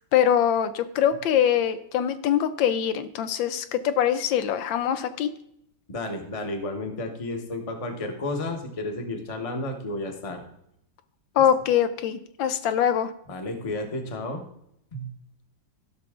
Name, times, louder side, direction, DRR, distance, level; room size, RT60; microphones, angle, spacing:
voice 1, 0.1-5.3 11.4-13.1, left 9 dB, 80° left, 11 dB, 1.3 m, -23 dB
voice 2, 5.9-10.5 13.3-14.5 14.9-15.1, left 2 dB, 25° left, 4 dB, 0.9 m, -32 dB
15.5 x 6.0 x 3.6 m, 0.76 s
omnidirectional pair, 2.1 m